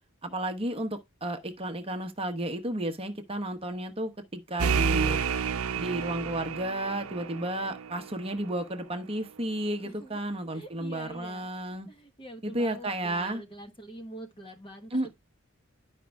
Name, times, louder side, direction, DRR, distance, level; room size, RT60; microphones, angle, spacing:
voice 1, 0.2-5.2 5.8-11.9 12.4-13.4 14.9-15.1, right 1 dB, 25° right, 1.0 m, -32 dB
sound 1, 4.6-8.1, right 6 dB, 70° right, 0.7 m, -30 dB
voice 2, 9.8-10.2 10.5-11.5 11.9-15.1, right 1 dB, 25° left, 1.4 m, -45 dB
11.0 x 5.2 x 3.5 m
head